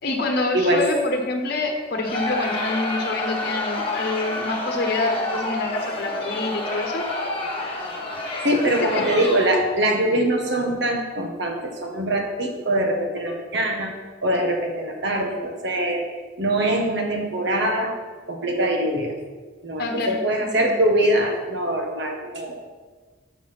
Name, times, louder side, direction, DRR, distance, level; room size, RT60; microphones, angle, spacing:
voice 1, 0.0-7.0 8.9-9.0 19.8-20.7, left 2 dB, 55° left, 3 dB, 1.1 m, -26 dB
Crowd, 2.0-9.7, left 2 dB, 30° left, 1.6 m, -29 dB
voice 2, 8.4-13.9 14.2-16.0 16.4-17.9 18.3-19.2 19.6-22.7, right 1 dB, 60° right, 3 dB, 1.3 m, -23 dB
7.1 x 6.1 x 6.0 m, 1.4 s
head